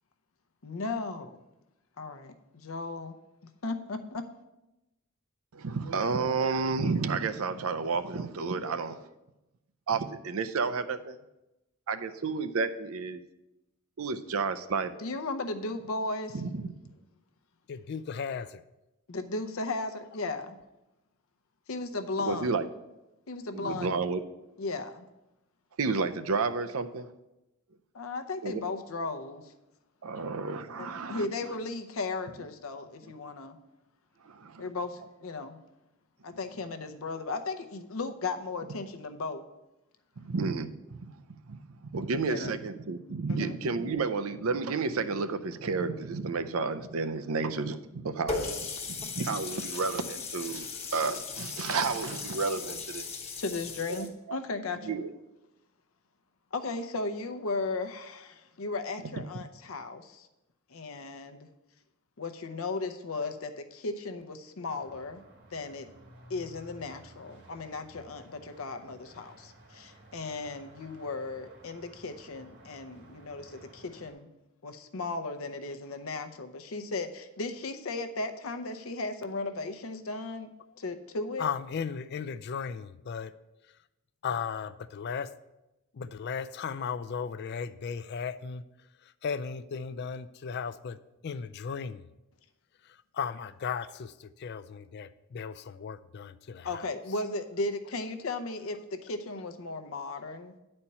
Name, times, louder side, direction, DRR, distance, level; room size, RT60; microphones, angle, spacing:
voice 1, 0.6-1.3 2.0-3.2 3.6-4.2 15.0-16.3 19.1-20.5 21.7-22.5 23.3-23.9 24.6-25.1 27.9-29.4 30.8-33.6 34.6-35.6 36.2-39.4 42.3-42.5 43.3-43.5 53.4-54.9 56.5-60.3 60.7-61.5 62.2-65.2 65.5-65.9 66.3-74.3 74.6-80.5 80.8-81.5 96.6-100.6, left 3 dB, 75° left, 8 dB, 0.7 m, -36 dB
voice 2, 5.5-9.1 9.9-11.2 11.9-13.2 14.0-15.0 16.3-16.7 22.2-22.7 23.5-24.2 25.8-27.1 28.4-28.6 30.0-31.6 33.0-33.1 34.2-34.7 36.3-36.4 40.2-48.5 48.9-53.1 53.9-54.4 54.7-55.1 59.0-59.1, right 4 dB, 80° right, 10 dB, 0.6 m, -31 dB
voice 3, 17.7-18.6 81.4-83.3 84.2-85.3 85.9-88.6 89.2-92.0 93.1-96.9, left 6 dB, 50° left, 14 dB, 0.3 m, -36 dB
Water tap faucet, 48.3-54.1, left 4 dB, 30° left, 0.9 m, -37 dB
sound 1, 64.7-74.1, right 1 dB, 55° right, 1.5 m, -54 dB
9.7 x 4.4 x 5.5 m, 0.96 s
head